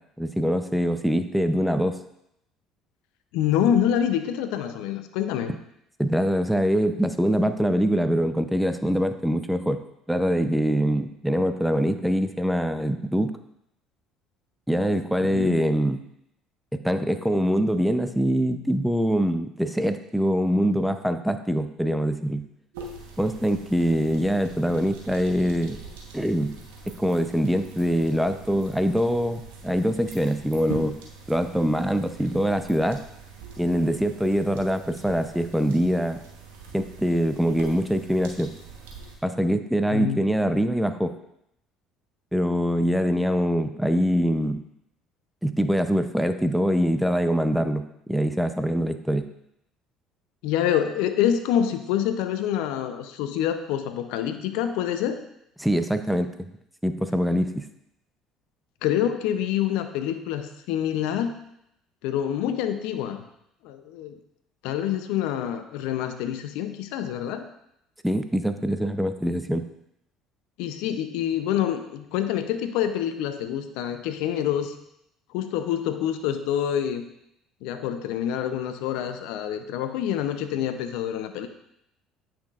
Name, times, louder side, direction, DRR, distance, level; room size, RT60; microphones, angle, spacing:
voice 1, 0.2-2.0 6.0-9.8 10.1-13.3 14.7-16.0 16.7-22.4 23.2-25.8 26.1-26.6 27.0-30.9 31.3-33.0 33.6-36.2 36.7-38.5 39.2-41.1 42.3-44.6 45.4-47.8 48.1-49.3 55.6-56.3 56.8-57.6 68.0-69.6, equal, ahead, 9 dB, 0.6 m, -24 dB
voice 2, 3.3-5.5 15.3-15.6 39.9-40.2 50.4-55.2 58.8-61.4 62.0-63.2 63.6-64.2 64.6-67.5 70.6-74.7 75.3-77.1 77.6-81.5, left 10 dB, 75° left, 9 dB, 0.6 m, -26 dB
sound 1, 22.7-39.2, right 4 dB, 85° right, 1.1 m, -43 dB
8.7 x 5.8 x 2.4 m, 0.78 s
hypercardioid pair, 65°, 0 cm